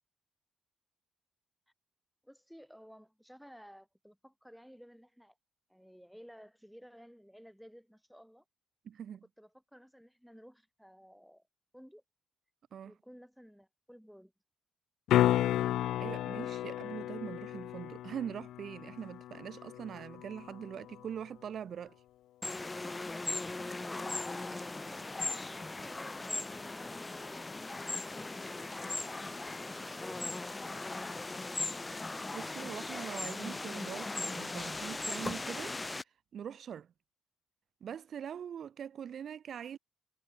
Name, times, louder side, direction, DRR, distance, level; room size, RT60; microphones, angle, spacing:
voice 1, 2.2-5.4 5.7-8.4 9.4-11.4 11.7-12.0 12.8-14.3 23.7-27.5 28.1-31.2, equal, ahead, 4.5 m, -55 dB
voice 2, 8.8-9.2 12.7-12.9 16.0-22.0 32.1-35.7 36.0-36.9 37.8-39.8, right 8 dB, 60° right, 3.1 m, -43 dB
sound 1, 15.1-21.1 25.8-25.9, left 13 dB, 85° left, 0.4 m, -33 dB
sound 2, 22.4-36.0, left 2 dB, 20° left, 0.5 m, -38 dB
cardioid pair, 90°, 0 cm